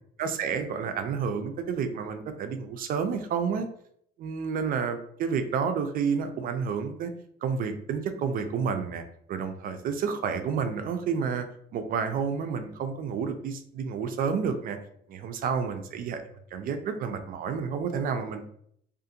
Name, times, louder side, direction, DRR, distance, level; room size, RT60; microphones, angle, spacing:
voice 1, 0.2-3.7 4.2-7.1 7.4-9.0 9.3-11.4 11.7-14.8 15.1-16.2 16.5-18.4, right 6 dB, 55° right, 8 dB, 0.4 m, -30 dB
2.5 x 2.4 x 2.7 m, 0.68 s
cardioid pair, 110°, 17 cm